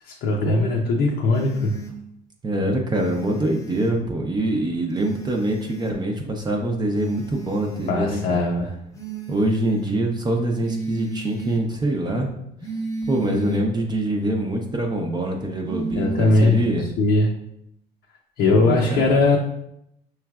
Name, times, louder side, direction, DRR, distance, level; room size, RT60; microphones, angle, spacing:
voice 1, 0.1-1.8 7.9-8.7 15.9-16.6 17.0-17.3 18.4-19.4, left 3 dB, 75° left, -1 dB, 0.6 m, -19 dB
sound 1, 1.3-1.9 2.9-3.9 4.9-6.0 6.9-8.0 8.9-10.0 10.6-11.6 12.6-13.6 15.6-16.7, right 2 dB, 20° left, 0.8 m, -33 dB
voice 2, 2.4-8.4 9.3-12.3 13.1-16.8 18.5-19.1, right 1 dB, 25° right, 1 dB, 0.6 m, -24 dB
5.7 x 3.1 x 2.4 m, 0.77 s
cardioid pair, 110°, 17 cm